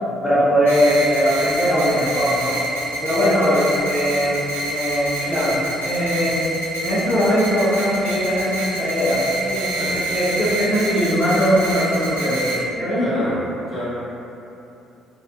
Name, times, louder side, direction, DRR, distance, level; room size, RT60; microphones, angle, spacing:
voice 1, 0.2-2.6 3.0-4.4 4.7-6.4 6.8-13.0, equal, 20° left, -11 dB, 0.8 m, -20 dB
sound 1, 0.7-12.6, right 1 dB, 85° right, 0.4 m, -27 dB
voice 2, 9.7-10.1 13.0-13.4 13.7-13.8, left 1 dB, 50° left, -11 dB, 1.0 m, -29 dB
2.5 x 2.0 x 2.6 m, 2.8 s
figure-of-eight pair, 50°, 0 cm